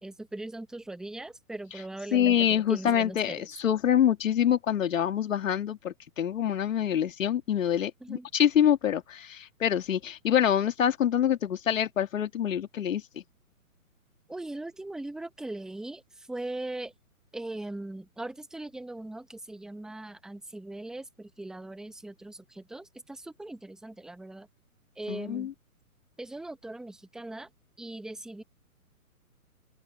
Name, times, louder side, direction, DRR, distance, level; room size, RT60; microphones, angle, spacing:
voice 1, 0.0-3.5 8.0-8.2 14.3-16.9 17.3-24.5 25.0-25.5 26.2-27.5 27.8-28.4, right 2 dB, ahead, 1.2 m, -40 dB
voice 2, 2.1-13.2 25.1-25.5, left 9 dB, 60° left, 2.2 m, -26 dB
hypercardioid pair, 150°, 44 cm